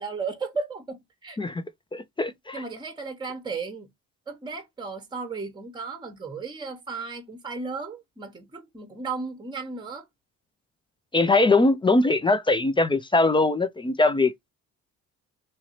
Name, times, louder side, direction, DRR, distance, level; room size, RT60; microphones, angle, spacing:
voice 1, 0.0-1.4 2.5-3.9 4.3-10.1, right 4 dB, 15° right, 0.9 m, -35 dB
voice 2, 1.9-2.6 11.1-14.3, left 2 dB, 15° left, 0.4 m, -21 dB
3.1 x 2.6 x 2.9 m
cardioid pair, 85°, 31 cm